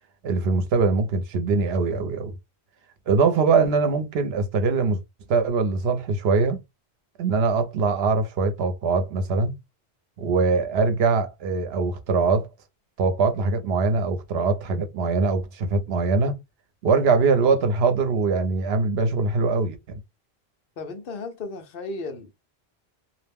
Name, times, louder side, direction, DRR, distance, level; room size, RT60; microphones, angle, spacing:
voice 1, 0.2-2.3 3.1-5.0 5.3-6.6 7.2-9.5 10.2-12.5 13.0-16.4 16.8-20.0, right 4 dB, 75° right, 0.8 m, -22 dB
voice 2, 20.8-22.3, left 3 dB, 65° left, 0.8 m, -35 dB
2.5 x 2.0 x 3.3 m
omnidirectional pair, 1.1 m